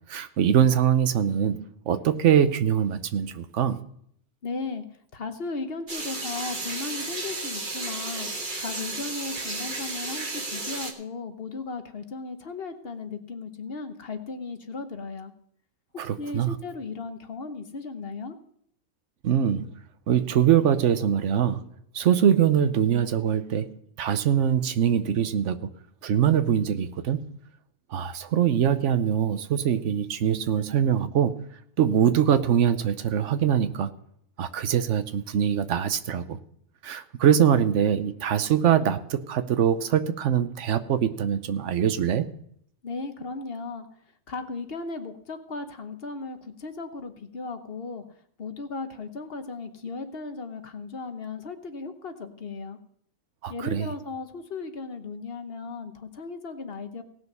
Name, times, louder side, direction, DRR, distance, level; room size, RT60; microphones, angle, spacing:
voice 1, 0.1-3.8 16.0-16.5 19.2-19.7 20.1-21.6 21.9-23.7 24.0-25.7 26.0-27.3 27.9-31.4 31.8-33.9 34.4-36.4 36.8-42.3 53.4-53.9, right 9 dB, 85° right, 12 dB, 1.1 m, -23 dB
voice 2, 4.4-4.8 5.1-8.3 8.6-15.3 16.2-18.4 42.8-43.9 44.3-48.0 48.4-52.8 53.5-57.0, left 4 dB, 55° left, 8 dB, 1.2 m, -36 dB
sound 1, 5.9-10.9, right 3 dB, 45° right, 1.6 m, -33 dB
18.0 x 6.4 x 5.4 m, 0.68 s
omnidirectional pair, 1.2 m